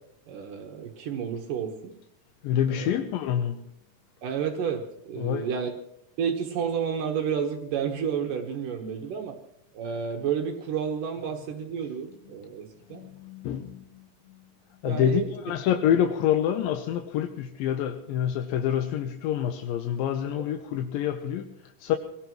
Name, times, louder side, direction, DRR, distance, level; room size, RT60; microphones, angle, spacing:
voice 1, 0.3-1.9 2.7-3.0 4.2-5.7 6.2-9.4 9.7-13.0 14.8-15.3 20.3-20.4, right 7 dB, 75° right, 2.8 m, -31 dB
voice 2, 2.4-3.7 5.2-5.5 12.9-14.4 14.8-22.0, left 10 dB, 90° left, 2.6 m, -27 dB
24.5 x 18.0 x 3.1 m
omnidirectional pair, 4.0 m